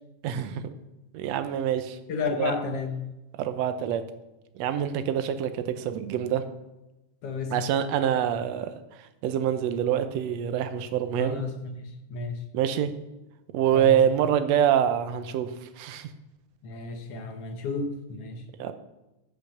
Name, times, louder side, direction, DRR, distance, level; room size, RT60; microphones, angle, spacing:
voice 1, 0.2-0.7 1.1-2.0 2.4-2.6 3.4-4.0 4.6-6.4 7.5-8.7 9.2-11.4 12.5-12.9 13.5-16.1 18.6-18.7, right 9 dB, 70° right, 10 dB, 1.8 m, -25 dB
voice 2, 2.1-2.9 7.2-7.6 11.2-12.4 13.7-14.0 16.6-18.4, left 4 dB, 65° left, 6 dB, 1.7 m, -32 dB
14.5 x 5.7 x 6.7 m, 0.97 s
omnidirectional pair, 3.5 m